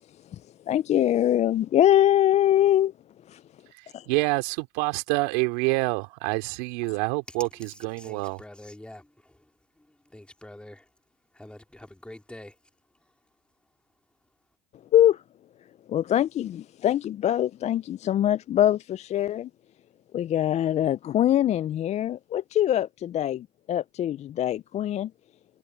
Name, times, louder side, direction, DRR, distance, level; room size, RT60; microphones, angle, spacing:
voice 1, 0.7-2.9 3.3-3.4 3.9-4.1 14.9-15.2 15.9-19.5 20.1-25.1, left 11 dB, 35° left, 0.4 m, -23 dB
voice 2, 3.7-8.4, right 26 dB, 80° right, 2.9 m, -27 dB
voice 3, 7.6-10.9 11.3-12.6 12.9-13.1, left 1 dB, 5° left, 3.4 m, -47 dB
supercardioid pair, 100°, 21 cm